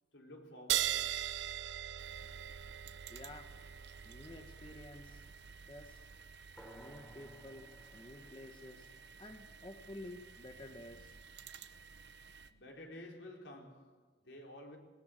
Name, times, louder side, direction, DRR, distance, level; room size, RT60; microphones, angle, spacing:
voice 1, 0.1-1.2 12.5-14.8, left 1 dB, 85° left, 4.4 m, -52 dB
sound 1, 0.7-7.7, right 12 dB, 90° right, 0.7 m, -40 dB
sound 2, 2.0-12.5, right 5 dB, 70° right, 1.0 m, -55 dB
voice 2, 3.1-3.5 4.0-5.2 5.7-6.0 6.7-8.9 9.2-11.1, left 1 dB, 30° left, 1.4 m, -51 dB
sound 3, 6.6-10.5, right 1 dB, 5° left, 3.2 m, -59 dB
20.0 x 20.0 x 7.8 m
head